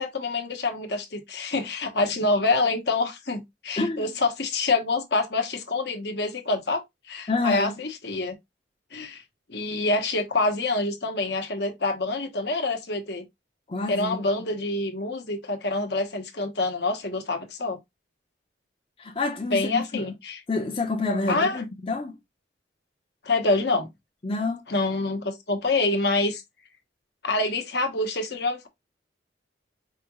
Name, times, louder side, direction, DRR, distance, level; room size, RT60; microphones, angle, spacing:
voice 1, 0.0-8.3 8.9-9.2 9.5-13.2 13.9-17.8 19.5-20.4 21.3-21.6 23.2-23.9 24.7-26.4 27.2-28.7, left 3 dB, 65° left, 1.0 m, -26 dB
voice 2, 3.8-4.1 7.3-7.7 13.7-14.2 19.0-20.1 20.5-22.2 24.2-24.6, left 3 dB, 30° left, 0.6 m, -28 dB
4.9 x 2.3 x 2.9 m
head